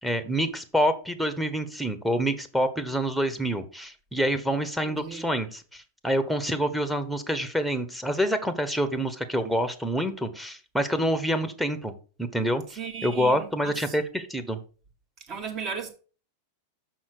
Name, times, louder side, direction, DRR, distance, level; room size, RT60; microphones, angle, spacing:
voice 1, 0.0-11.9 12.2-14.6, equal, ahead, 1.2 m, -27 dB
voice 2, 4.8-5.3 12.8-14.0 15.3-15.9, right 6 dB, 40° right, 2.3 m, -36 dB
6.3 x 5.7 x 6.0 m
hypercardioid pair, 115°, 0 cm